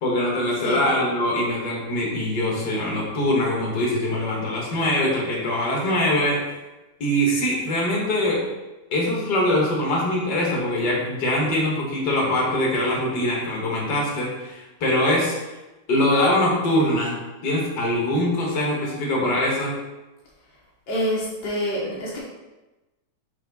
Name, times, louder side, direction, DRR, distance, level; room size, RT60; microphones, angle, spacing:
voice 1, 0.0-6.4 7.0-8.4 8.9-15.4 15.9-17.2 17.4-19.7, left 1 dB, 45° left, -3 dB, 1.5 m, -23 dB
voice 2, 20.9-22.2, equal, 65° left, -6 dB, 1.0 m, -26 dB
5.6 x 4.4 x 5.4 m, 1.1 s
omnidirectional pair, 3.9 m